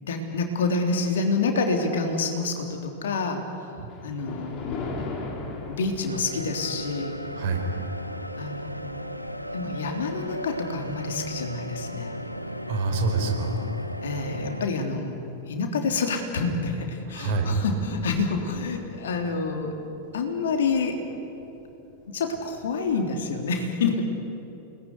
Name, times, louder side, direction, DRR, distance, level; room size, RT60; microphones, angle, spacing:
voice 1, 0.0-3.4 4.0-4.9 5.7-7.2 8.4-9.1 9.5-12.1 14.0-15.2 15.5-19.7 20.1-21.0 22.1-24.0, left 4 dB, 65° left, 4 dB, 3.5 m, -28 dB
Thunder, 3.9-12.4 12.9-13.2 13.9-14.0 14.3-14.4 16.6-16.8 17.1-17.2 17.4-23.4, left 3 dB, 30° left, 4.7 m, -42 dB
sound 1, 6.1-14.7, equal, 90° left, 0.9 m, -36 dB
voice 2, 7.4-7.7 12.7-13.6 17.1-17.5, right 3 dB, 50° right, 3 dB, 4.9 m, -26 dB
29.0 x 20.0 x 9.8 m, 2.9 s
figure-of-eight pair, 90°, 0 cm